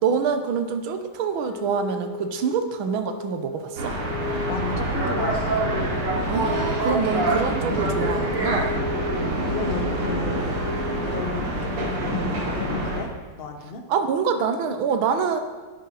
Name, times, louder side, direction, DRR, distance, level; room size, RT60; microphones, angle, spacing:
voice 1, 0.0-4.0 6.3-8.8 13.9-15.4, right 6 dB, 70° right, 8 dB, 1.7 m, -26 dB
Wind instrument woodwind instrument, 1.3-11.1, left 3 dB, 80° left, 2.9 m, -34 dB
sound 1, 3.8-13.0, right 1 dB, 85° right, 3.6 m, -26 dB
voice 2, 4.5-6.2 9.4-10.5 11.1-12.0 12.5-13.1 13.4-13.8, left 3 dB, 35° left, 4 dB, 1.0 m, -33 dB
10.5 x 9.0 x 5.8 m, 1.3 s
omnidirectional pair, 2.4 m